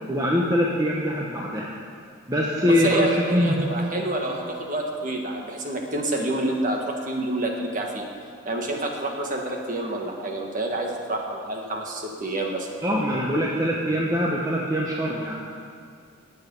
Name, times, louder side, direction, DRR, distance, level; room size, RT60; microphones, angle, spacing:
voice 1, 0.1-1.7 2.3-3.7 12.8-15.3, equal, 15° right, -3 dB, 1.0 m, -23 dB
voice 2, 2.6-8.0 8.4-12.7, right 1 dB, 40° right, 1 dB, 1.6 m, -28 dB
sound 1, 3.4-4.5 6.7-7.1 9.8-10.0 10.8-11.2, equal, 35° left, 3.8 m, -48 dB
19.0 x 8.0 x 5.5 m, 2.3 s
head